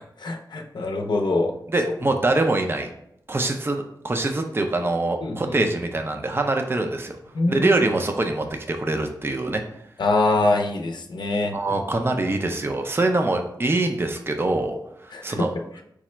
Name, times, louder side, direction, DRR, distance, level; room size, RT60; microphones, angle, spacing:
voice 1, 0.2-1.5 5.2-5.6 7.3-7.8 10.0-11.5 15.1-15.5, left 2 dB, 70° left, 3 dB, 0.5 m, -24 dB
voice 2, 1.7-2.9 3.3-7.2 7.5-9.6 11.5-14.7 15.0-15.5, right 2 dB, 30° right, 5 dB, 0.5 m, -24 dB
4.8 x 2.1 x 4.3 m, 0.75 s
wide cardioid pair, 75°, 8 cm